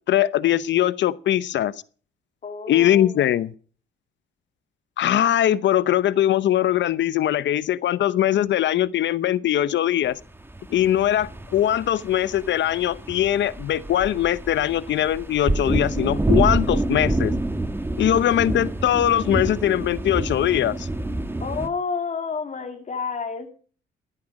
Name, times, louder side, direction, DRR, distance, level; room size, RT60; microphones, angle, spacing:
voice 1, 0.1-1.7 2.7-3.5 5.0-10.2 10.7-17.3 18.0-20.9, left 11 dB, 65° left, 0.8 m, -21 dB
voice 2, 2.4-3.2 21.4-23.5, left 5 dB, 40° left, 2.2 m, -30 dB
sound 1, 10.3-21.7, right 2 dB, 10° right, 1.3 m, -27 dB
15.0 x 10.5 x 4.9 m
cardioid pair, 90°, 20 cm